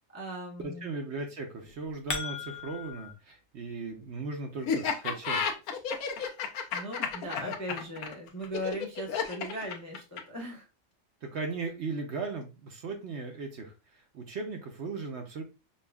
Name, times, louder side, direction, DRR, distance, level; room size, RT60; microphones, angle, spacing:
voice 1, 0.1-0.9 6.7-10.7, equal, 20° left, -2 dB, 0.5 m, -38 dB
voice 2, 0.6-5.6 11.2-13.7 14.1-15.4, right 3 dB, 60° right, 4 dB, 0.8 m, -37 dB
sound 1, 1.6-3.1, left 5 dB, 50° left, 0.8 m, -37 dB
Laughter, 4.7-10.4, left 6 dB, 90° left, 1.1 m, -31 dB
5.3 x 2.4 x 2.2 m, 0.29 s
omnidirectional pair, 1.5 m